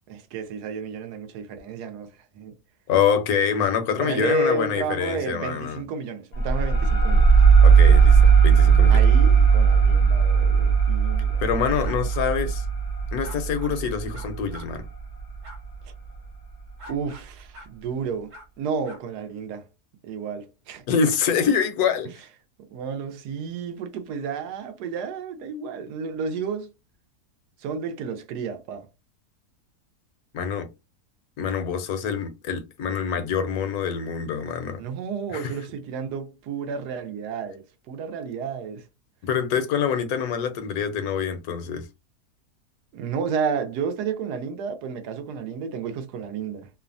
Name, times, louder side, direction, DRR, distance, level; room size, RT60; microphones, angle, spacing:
voice 1, 0.1-2.5 4.0-7.3 8.9-11.4 16.9-19.7 20.0-20.8 22.7-26.7 27.6-28.9 34.8-38.9 42.9-46.7, right 5 dB, 80° right, 1.2 m, -31 dB
voice 2, 2.9-5.8 7.6-9.0 11.4-12.6 13.1-14.8 20.9-22.1 30.3-30.7 31.4-34.8 35.3-35.5 39.2-41.9, left 7 dB, 75° left, 1.1 m, -25 dB
sound 1, 6.3-15.6, right 6 dB, 55° left, 0.4 m, -17 dB
sound 2, 11.8-12.2 13.2-13.7 14.1-14.7 15.4-15.6 16.8-17.2 17.5-17.7 18.3-18.4 18.8-19.0, right 1 dB, 55° right, 1.4 m, -44 dB
3.1 x 2.1 x 2.5 m
omnidirectional pair, 1.7 m